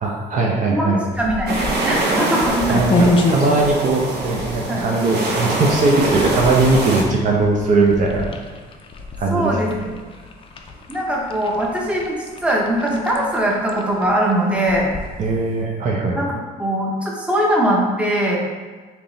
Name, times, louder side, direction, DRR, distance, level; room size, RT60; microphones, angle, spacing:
voice 1, 0.0-1.0 2.7-8.3 9.2-9.6 15.2-16.2, right 3 dB, 50° right, -1 dB, 0.6 m, -19 dB
voice 2, 0.7-2.8 4.7-4.9 9.3-9.9 10.9-12.2 12.4-14.9 16.1-16.3 16.6-18.4, right 1 dB, 5° right, -3 dB, 0.8 m, -21 dB
sound 1, 1.1-15.6, left 2 dB, 30° left, 0.4 m, -29 dB
sound 2, 1.5-7.0, right 2 dB, 75° right, 0.9 m, -24 dB
3.5 x 2.9 x 3.9 m, 1.4 s
cardioid pair, 110°, 17 cm